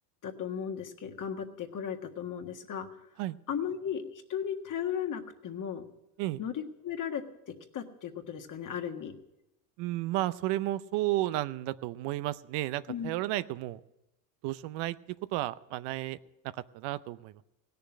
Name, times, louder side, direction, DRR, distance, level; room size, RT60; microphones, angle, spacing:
voice 1, 0.2-2.9 3.5-5.8 6.4-9.1 12.9-13.1, left 8 dB, 45° left, 5 dB, 1.7 m, -36 dB
voice 2, 9.8-13.8 14.4-15.0 15.3-16.2 16.5-17.3, right 16 dB, 65° right, 15 dB, 0.7 m, -32 dB
16.5 x 6.9 x 9.8 m, 0.92 s
supercardioid pair, 80°, 45 cm